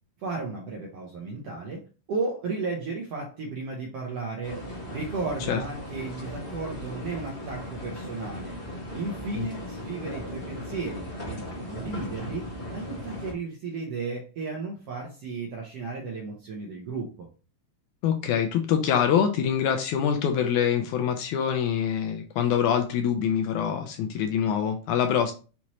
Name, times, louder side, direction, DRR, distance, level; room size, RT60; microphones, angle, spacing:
voice 1, 0.2-1.8 2.1-8.6 8.9-17.3, right 3 dB, 75° right, -1 dB, 1.5 m, -34 dB
sound 1, 4.4-13.3, left 1 dB, 60° left, 0.6 m, -37 dB
voice 2, 18.0-25.3, left 8 dB, 80° left, 4 dB, 1.8 m, -25 dB
5.8 x 2.8 x 3.0 m, 0.35 s
omnidirectional pair, 3.8 m